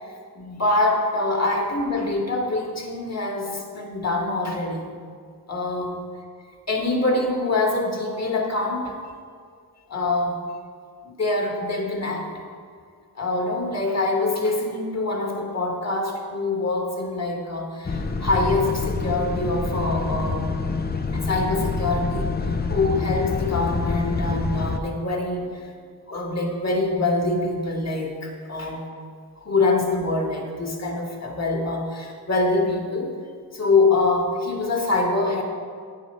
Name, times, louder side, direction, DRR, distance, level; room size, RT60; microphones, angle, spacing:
voice 1, 0.4-4.9 5.5-6.0 6.7-9.0 9.9-10.4 11.0-12.3 13.2-20.5 21.1-22.3 22.7-25.6 26.1-28.9 29.4-33.2 33.5-35.4, left 2 dB, 40° left, 1 dB, 1.7 m, -24 dB
sound 1, 17.8-24.8, left 4 dB, 25° left, 0.5 m, -26 dB
9.3 x 5.0 x 5.4 m, 2.1 s
cardioid pair, 60°, 39 cm